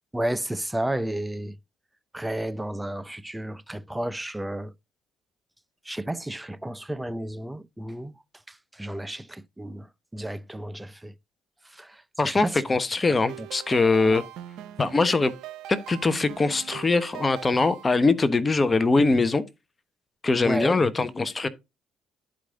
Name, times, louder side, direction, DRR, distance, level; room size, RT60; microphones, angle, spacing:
voice 1, 0.1-1.6 2.1-4.7 5.8-8.1 8.5-11.1 11.6-12.6 13.4-13.5 14.1-14.2 20.4-20.8, right 1 dB, 10° right, 0.7 m, -32 dB
voice 2, 12.2-14.2 14.8-15.3 15.7-19.4 20.2-21.5, left 3 dB, 25° left, 1.2 m, -22 dB
sound 1, 13.1-18.1, right 12 dB, 75° right, 0.9 m, -41 dB
11.5 x 5.1 x 3.8 m
supercardioid pair, 65°, 0 cm